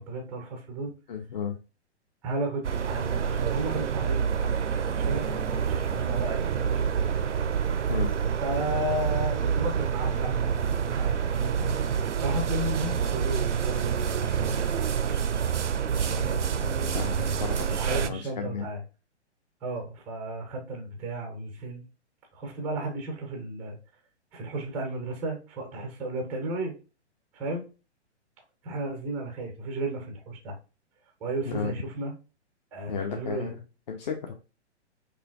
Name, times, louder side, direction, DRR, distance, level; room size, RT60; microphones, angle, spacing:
voice 1, 0.0-0.9 2.2-7.4 7.7-7.9 8.4-11.8 12.2-14.8 15.9-17.5 17.8-18.8 19.6-21.8 22.3-23.8 24.3-26.7 27.3-27.7 28.6-30.6 31.2-32.1 32.7-33.5, right 1 dB, 5° right, 3 dB, 0.4 m, -34 dB
voice 2, 1.1-1.6 7.9-8.1 16.9-18.7 31.5-31.7 32.9-33.6 33.9-34.3, left 6 dB, 40° left, 2 dB, 0.6 m, -33 dB
sound 1, 2.6-18.1, right 7 dB, 85° right, 0.5 m, -27 dB
4.9 x 2.7 x 2.3 m, 0.32 s
figure-of-eight pair, 120°, 35 cm